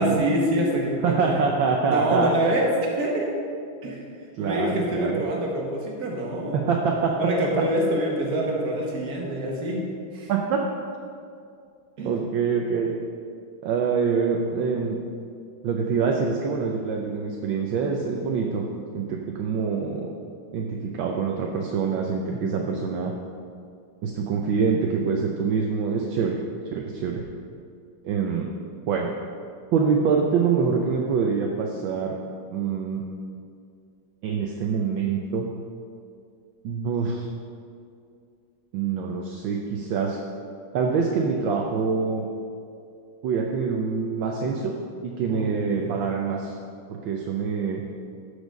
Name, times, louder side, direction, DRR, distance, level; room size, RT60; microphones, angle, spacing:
voice 1, 0.0-1.5 1.9-3.3 3.8-4.1 4.4-6.6 7.2-10.3 12.0-12.2 45.3-46.0, right 1 dB, 50° right, -1 dB, 1.8 m, -26 dB
voice 2, 1.0-2.3 4.4-5.2 6.5-7.2 10.3-10.6 12.0-12.9 13.6-15.0 15.6-18.6 18.9-20.1 20.5-23.1 24.0-26.4 26.6-27.2 28.0-28.5 28.9-29.1 29.7-32.2 32.5-33.0 34.2-35.5 36.6-37.3 38.7-40.2 40.7-42.3 43.2-44.7 45.0-46.5 46.9-47.8, right 5 dB, 70° right, 1 dB, 1.4 m, -25 dB
12.5 x 5.0 x 5.2 m, 2.4 s
omnidirectional pair, 2.3 m